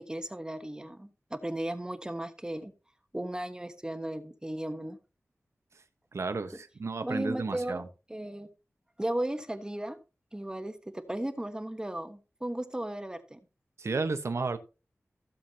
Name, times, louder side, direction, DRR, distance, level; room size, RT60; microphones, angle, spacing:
voice 1, 0.0-2.7 3.1-5.0 7.0-7.8 8.1-8.5 9.0-10.0 10.3-13.4, right 1 dB, 15° right, 7 dB, 1.2 m, -35 dB
voice 2, 6.1-7.9 13.8-14.6, right 3 dB, 75° right, 9 dB, 1.2 m, -32 dB
16.0 x 7.3 x 2.9 m, 0.31 s
wide cardioid pair, 90°, 5 cm